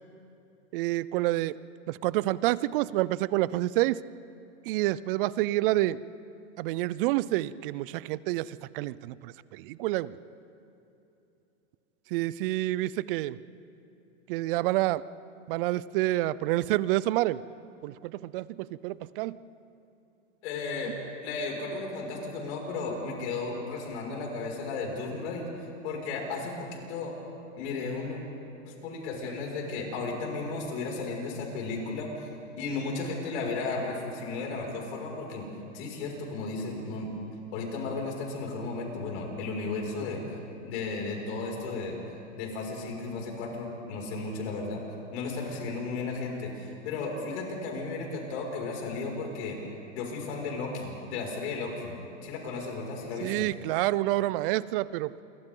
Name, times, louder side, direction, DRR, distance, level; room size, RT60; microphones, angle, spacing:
voice 1, 0.7-1.6 1.9-4.0 4.6-6.0 6.6-10.2 12.1-13.4 14.3-15.0 15.5-17.4 17.8-19.4 53.2-55.2, right 17 dB, 45° right, 19 dB, 0.6 m, -28 dB
voice 2, 20.4-20.9 21.2-25.5 25.8-27.2 27.6-28.2 28.6-32.3 32.6-35.5 35.7-37.2 37.5-40.2 40.6-42.0 42.3-44.8 45.1-49.6 49.9-51.9 52.2-53.5, left 3 dB, 60° left, 0 dB, 6.0 m, -34 dB
28.5 x 24.0 x 3.9 m, 2.9 s
hypercardioid pair, 130°, 38 cm